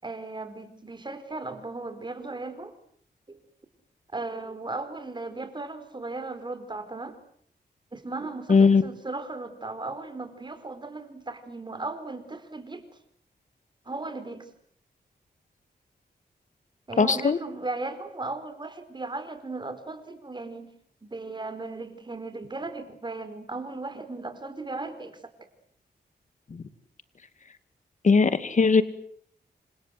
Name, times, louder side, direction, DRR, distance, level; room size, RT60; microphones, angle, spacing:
voice 1, 0.0-2.7 3.3-3.4 4.1-7.2 7.9-12.8 13.8-14.5 16.9-20.7 21.0-25.2, right 3 dB, 25° right, 10 dB, 4.6 m, -36 dB
voice 2, 8.5-8.8 17.0-17.4 26.5-26.6 28.0-28.8, left 4 dB, 45° left, 12 dB, 2.3 m, -19 dB
29.5 x 26.0 x 7.8 m, 0.64 s
wide cardioid pair, 115°, 17 cm